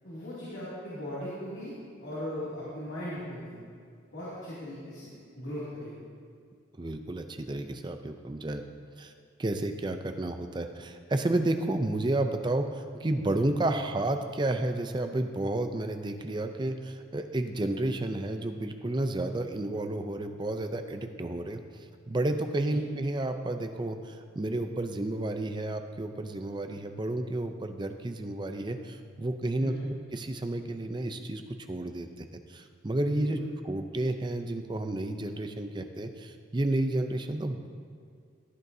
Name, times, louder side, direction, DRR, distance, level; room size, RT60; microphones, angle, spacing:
voice 1, 0.0-1.7 2.0-3.6 4.1-5.9 22.5-22.8 29.6-29.9 33.1-33.5, equal, 80° left, -10 dB, 2.6 m, -38 dB
voice 2, 6.8-8.6 9.0-9.1 9.4-29.7 30.1-31.4 31.7-33.4 33.6-37.7, right 1 dB, 25° right, 7 dB, 0.5 m, -31 dB
15.0 x 9.2 x 2.7 m, 2.3 s
head